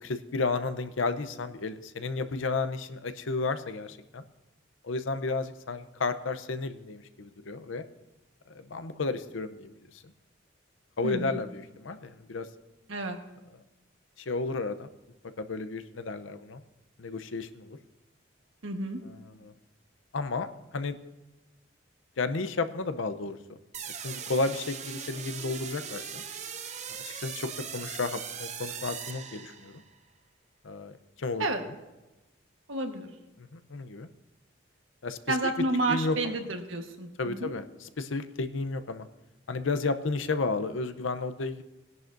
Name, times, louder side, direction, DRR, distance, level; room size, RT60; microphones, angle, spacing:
voice 1, 0.0-4.2 4.8-7.8 8.5-10.0 11.0-12.5 14.2-14.9 15.4-16.6 17.0-17.8 19.0-19.5 20.1-20.5 20.7-21.0 22.2-23.6 24.0-26.2 27.0-29.8 30.6-31.7 33.4-34.1 35.0-35.5 35.9-36.4 37.2-39.1 39.5-41.6, left 3 dB, 80° left, 11 dB, 0.7 m, -32 dB
voice 2, 11.0-11.4 12.9-13.2 18.6-19.0 31.4-31.6 32.7-33.1 35.3-37.5, right 2 dB, 85° right, 4 dB, 1.3 m, -30 dB
sound 1, 23.7-29.9, right 7 dB, 35° right, 0.7 m, -40 dB
19.5 x 10.5 x 2.6 m, 1.0 s
head